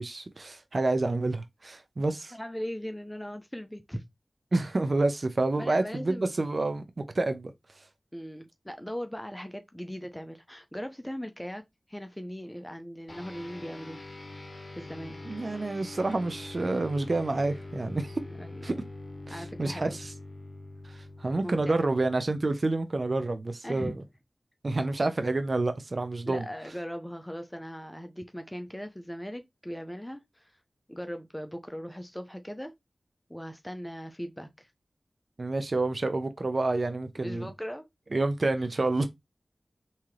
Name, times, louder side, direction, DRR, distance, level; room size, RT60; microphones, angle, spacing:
voice 1, 0.0-2.3 4.5-6.8 7.1-7.5 15.2-18.2 18.6-18.8 19.3-20.1 20.9-24.0 24.6-26.4 35.4-37.5 38.1-39.1, right 2 dB, 55° right, 0.6 m, -28 dB
voice 2, 2.3-4.0 5.6-6.3 8.1-14.0 14.8-15.2 18.4-18.6 19.3-20.0 21.4-21.9 23.6-23.9 26.3-30.5 30.9-32.7 33.3-34.7 37.2-37.9, equal, 10° left, 0.6 m, -39 dB
sound 1, 13.1-22.8, left 2 dB, 50° left, 0.8 m, -44 dB
3.6 x 2.8 x 3.1 m
cardioid pair, 45°, 0 cm